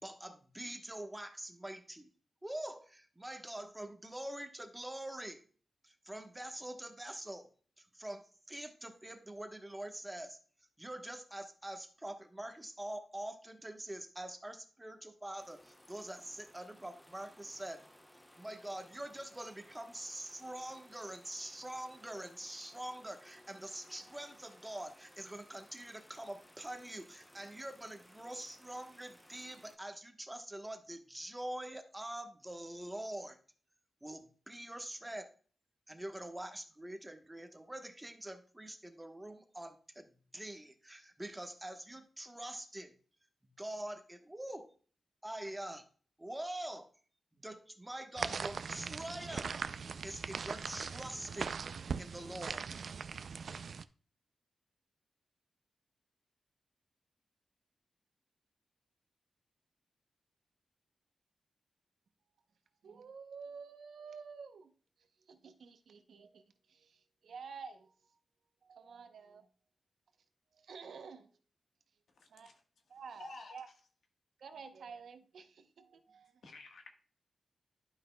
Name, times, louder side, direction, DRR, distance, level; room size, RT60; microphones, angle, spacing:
voice 1, 0.0-2.1 2.4-5.4 5.8-7.5 7.8-10.4 10.8-17.8 18.4-33.4 34.0-35.3 35.9-42.9 43.4-44.7 45.2-45.8 46.2-46.9 47.3-49.5 50.0-51.6 52.0-52.6, right 1 dB, 10° right, 6 dB, 1.1 m, -45 dB
sound 1, 15.4-29.8, equal, 5° left, 0.7 m, -61 dB
sound 2, 48.2-53.8, right 5 dB, 70° right, 0.3 m, -40 dB
voice 2, 62.8-64.7 65.0-68.2 68.6-69.5 70.5-71.4 72.3-72.5 72.9-73.7 74.4-76.4, right 5 dB, 85° right, 8 dB, 0.7 m, -51 dB
voice 3, 73.2-73.6 76.4-76.9, left 3 dB, 85° left, 4 dB, 1.3 m, -49 dB
11.5 x 5.5 x 2.2 m, 0.43 s
wide cardioid pair, 90°, 0 cm